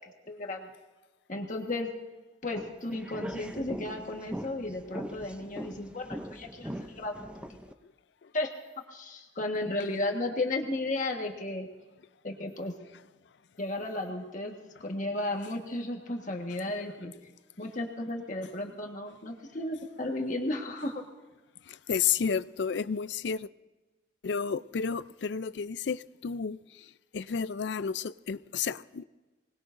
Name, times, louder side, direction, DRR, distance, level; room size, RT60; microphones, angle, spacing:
voice 1, 0.3-0.7 1.3-1.9 2.4-7.4 8.3-8.5 8.9-11.7 12.2-12.7 13.6-14.5 14.8-17.1 17.6-21.0, left 2 dB, 45° left, 1.5 m, -34 dB
sound 1, 2.5-7.7, equal, 5° right, 0.6 m, -41 dB
voice 2, 21.7-23.5 24.2-29.0, left 6 dB, 70° left, 0.4 m, -32 dB
24.5 x 19.5 x 2.6 m
head